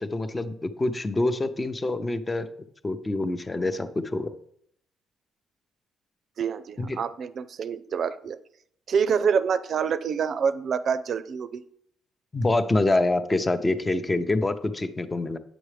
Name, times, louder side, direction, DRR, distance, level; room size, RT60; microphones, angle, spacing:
voice 1, 0.0-2.5 2.8-4.3 6.8-7.0 12.3-15.4, left 2 dB, 20° left, 10 dB, 0.7 m, -26 dB
voice 2, 6.4-8.4 8.9-11.6, right 6 dB, 55° right, 13 dB, 0.5 m, -26 dB
8.9 x 6.2 x 3.3 m, 0.67 s
cardioid pair, 90°, 0 cm